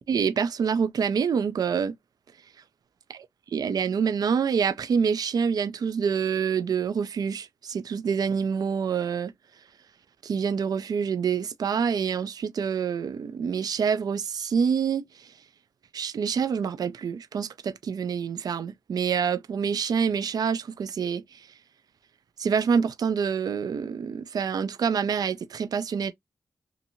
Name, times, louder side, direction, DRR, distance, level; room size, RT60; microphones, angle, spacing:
voice 1, 0.1-2.0 3.5-9.3 10.2-15.3 15.9-21.5 22.4-26.1, right 6 dB, 70° right, 0.4 m, -26 dB
2.8 x 2.5 x 2.6 m
cardioid pair, 70°, 7 cm